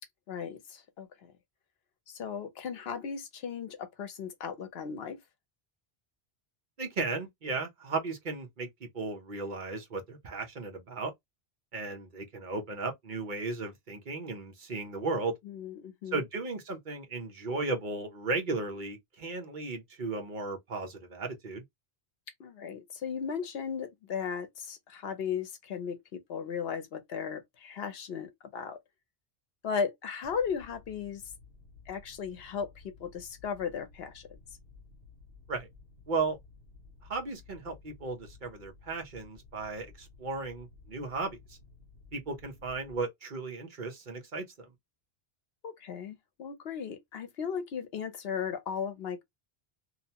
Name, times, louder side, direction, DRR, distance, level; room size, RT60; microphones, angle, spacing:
voice 1, 0.3-1.3 2.1-5.2 15.4-16.2 22.4-28.8 29.6-31.2 31.9-34.4 45.6-49.2, left 6 dB, 75° left, 0.9 m, -36 dB
voice 2, 6.8-11.1 11.7-15.3 16.1-21.6 35.5-35.7 36.1-36.4 37.1-41.6 42.1-44.7, right 3 dB, 50° right, 0.8 m, -35 dB
Mechanical fan, 30.2-43.0, left 4 dB, 70° right, 1.2 m, -55 dB
2.8 x 2.1 x 2.7 m
omnidirectional pair, 1.1 m